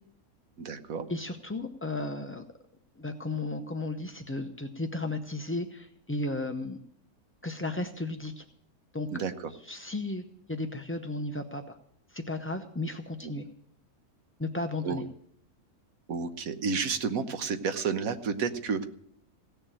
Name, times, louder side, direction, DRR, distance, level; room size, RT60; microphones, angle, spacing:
voice 1, 0.6-1.1 9.1-9.5 13.2-13.3 14.8-15.0 16.1-18.9, right 5 dB, 65° right, 9 dB, 1.4 m, -31 dB
voice 2, 1.1-2.4 3.0-6.8 7.4-8.4 8.9-9.1 9.6-11.8 12.1-13.4 14.4-15.0, left 2 dB, 20° left, 5 dB, 0.3 m, -34 dB
16.5 x 6.9 x 8.9 m, 0.69 s
omnidirectional pair, 1.6 m